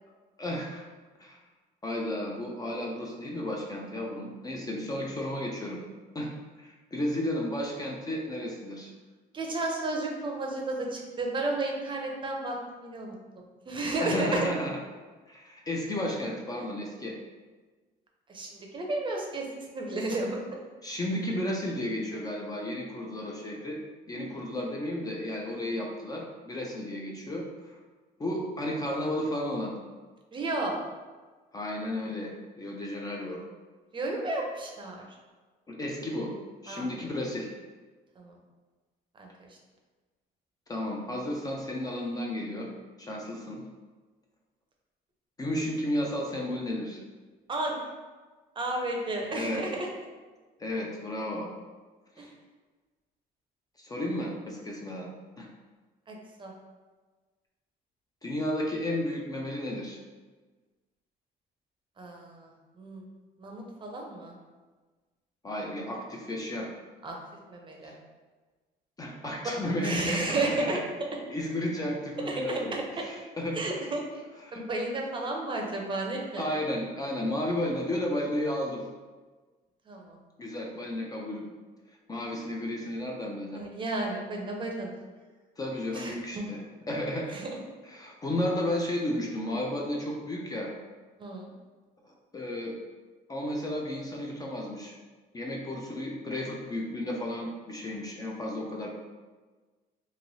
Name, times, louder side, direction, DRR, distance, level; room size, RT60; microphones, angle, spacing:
voice 1, 0.4-0.8 1.2-1.4 1.8-5.8 6.1-6.3 6.6-8.9 14.0-14.8 15.3-17.2 20.8-23.8 24.1-27.8 28.2-29.7 31.5-33.4 35.7-36.3 36.6-37.5 40.7-42.7 43.0-43.6 45.4-47.0 49.3-49.6 50.6-51.5 52.2-52.3 53.8-55.1 55.4-55.5 58.2-60.0 65.4-66.7 67.8-67.9 69.0-70.8 71.3-73.7 74.5-74.6 76.4-78.8 80.4-81.5 82.1-83.6 85.6-86.6 86.9-87.4 87.8-90.7 92.0-92.7 93.3-94.9 95.3-98.9, left 1 dB, 20° left, -1 dB, 0.4 m, -33 dB
voice 2, 9.3-13.1 13.7-14.4 18.3-19.5 19.7-20.4 24.2-24.3 30.3-30.8 33.9-35.0 36.7-36.9 38.2-38.4 39.2-39.5 47.5-47.8 48.6-49.9 52.2-52.3 56.1-56.5 62.0-62.5 62.8-63.0 63.4-64.3 67.0-67.2 67.5-67.9 69.8-70.8 72.3-73.1 73.5-74.2 74.5-76.4 79.9-80.2 83.5-84.9 85.9-86.1 87.3-87.5 91.2-91.5, right 2 dB, 30° right, 0 dB, 0.6 m, -32 dB
3.1 x 2.6 x 2.6 m, 1.3 s
cardioid pair, 110°, 17 cm